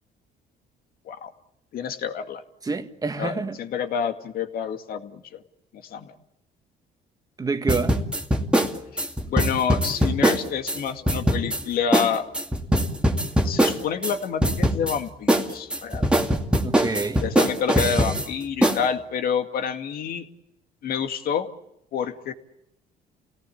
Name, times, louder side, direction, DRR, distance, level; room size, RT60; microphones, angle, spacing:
voice 1, 1.7-2.4 3.2-5.4 5.7-6.1 8.9-12.3 13.4-16.2 17.2-20.3 20.8-21.5 21.9-22.3, left 7 dB, 60° left, 2.2 m, -28 dB
voice 2, 2.6-3.6 7.4-8.0 16.6-17.2, right 4 dB, 20° right, 1.8 m, -27 dB
sound 1, 7.7-10.8 11.1-11.6 11.9-12.1 12.3-14.1 14.4-15.0 15.3-18.3 18.6-18.8, right 1 dB, 5° right, 2.4 m, -21 dB
29.5 x 18.0 x 8.7 m
cardioid pair, 110°, 17 cm